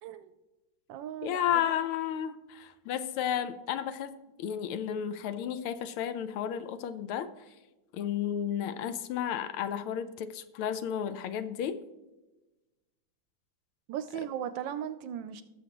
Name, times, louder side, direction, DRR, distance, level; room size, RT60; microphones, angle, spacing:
voice 1, 0.0-0.3 0.9-1.6 13.9-15.4, right 9 dB, 75° right, 12 dB, 1.1 m, -37 dB
voice 2, 1.2-7.3 7.9-11.8, left 9 dB, 85° left, 12 dB, 1.6 m, -32 dB
18.5 x 6.3 x 2.9 m, 1.1 s
omnidirectional pair, 2.3 m